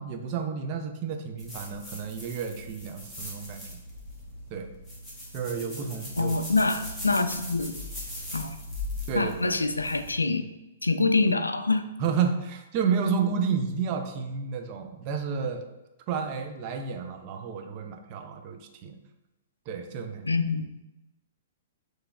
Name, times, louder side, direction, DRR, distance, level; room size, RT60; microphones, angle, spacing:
voice 1, 0.0-3.8 4.5-4.7 5.3-6.3 9.1-9.5 12.0-15.6 16.1-19.0 19.7-20.4, right 6 dB, 35° right, 5 dB, 0.5 m, -31 dB
sound 1, 1.4-10.1, left 1 dB, ahead, 1.3 m, -40 dB
voice 2, 6.2-7.8 8.3-8.6 9.1-10.4 10.8-11.8 20.2-20.8, left 3 dB, 80° left, 9 dB, 0.3 m, -25 dB
6.7 x 3.2 x 2.4 m, 0.97 s
figure-of-eight pair, 110°, 0 cm